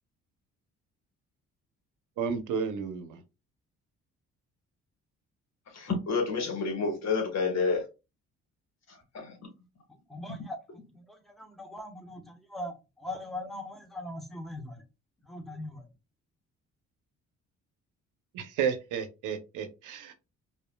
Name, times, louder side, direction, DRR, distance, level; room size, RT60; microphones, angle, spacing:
voice 1, 2.2-3.2 18.3-20.1, right 7 dB, 85° right, 0.8 m, -32 dB
voice 2, 5.7-7.8 8.9-9.4, left 4 dB, 60° left, 1.6 m, -29 dB
voice 3, 10.1-10.6 10.9-14.8 15.2-15.9, left 1 dB, ahead, 1.0 m, -40 dB
5.1 x 2.6 x 2.2 m
cardioid pair, 90°, 30 cm